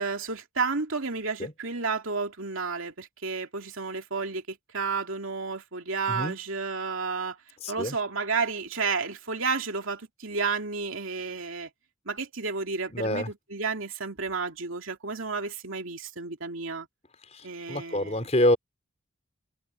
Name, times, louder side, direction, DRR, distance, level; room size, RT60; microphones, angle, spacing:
voice 1, 0.0-7.4 7.7-11.7 12.1-16.9 17.4-18.3, right 4 dB, 70° right, 2.5 m, -31 dB
voice 2, 7.6-7.9 12.9-13.3 17.7-18.6, left 1 dB, 30° left, 4.9 m, -25 dB
open air
head